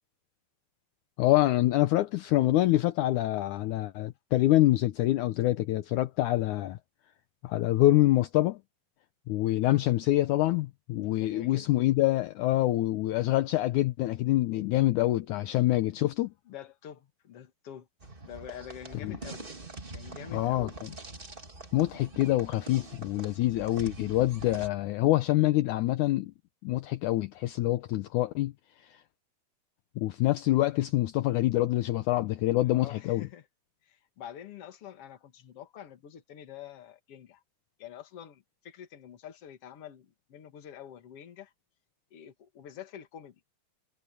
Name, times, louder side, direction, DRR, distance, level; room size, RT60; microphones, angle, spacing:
voice 1, 1.2-6.8 7.4-8.6 9.3-16.3 19.0-19.2 20.3-20.9 21.7-26.3 26.6-28.5 28.8-29.0 30.0-33.3, left 16 dB, 75° left, 2.1 m, -26 dB
voice 2, 11.2-11.7 15.5-15.6 16.5-17.9 18.2-19.5 19.9-20.8 32.6-33.5 33.9-37.4 37.8-41.5 42.1-43.4, left 10 dB, 50° left, 2.4 m, -46 dB
sound 1, 18.0-24.7, right 3 dB, 20° right, 1.6 m, -44 dB
omnidirectional pair, 4.0 m